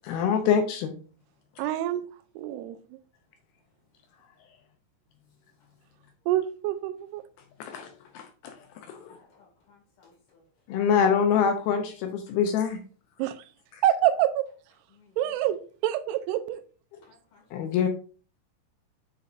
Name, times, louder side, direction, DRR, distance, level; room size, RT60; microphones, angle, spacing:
voice 1, 0.1-0.9 7.6-7.9 8.1-8.5 8.9-9.2 10.7-12.8 17.5-17.9, left 7 dB, 75° left, 5 dB, 2.4 m, -25 dB
voice 2, 1.6-2.0 2.4-2.8 6.3-7.2 13.2-13.3 13.8-14.5 15.2-16.6, right 12 dB, 85° right, 10 dB, 2.6 m, -26 dB
voice 3, 9.0-10.4 11.6-11.7 12.3-12.4 14.9-15.5 17.0-17.4, left 4 dB, 55° left, -2 dB, 3.4 m, -60 dB
8.9 x 4.3 x 2.5 m, 0.39 s
omnidirectional pair, 4.7 m